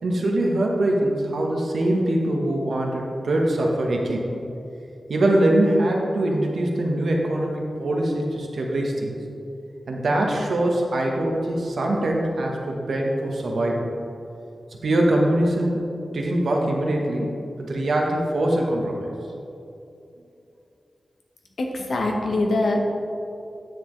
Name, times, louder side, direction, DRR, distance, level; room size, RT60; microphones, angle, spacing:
voice 1, 0.0-4.3 5.1-9.1 9.9-13.8 14.8-15.9 16.1-17.3 17.6-19.1, right 1 dB, 80° right, 0 dB, 1.2 m, -23 dB
voice 2, 21.6-22.8, left 2 dB, 90° left, 1 dB, 1.0 m, -23 dB
9.5 x 7.0 x 3.2 m, 2.7 s
wide cardioid pair, 100°, 0 cm